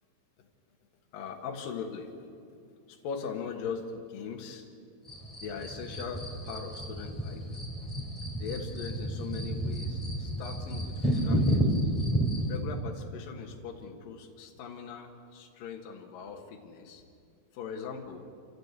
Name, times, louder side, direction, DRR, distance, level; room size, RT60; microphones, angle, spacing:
voice 1, 1.1-2.1 2.9-4.6 5.4-7.5 8.4-11.8 12.5-17.0 17.5-18.3, left 6 dB, 70° left, 2 dB, 3.2 m, -40 dB
sound 1, 5.1-12.6, equal, ahead, 3.4 m, -31 dB
28.5 x 14.0 x 8.1 m, 2.4 s
omnidirectional pair, 4.3 m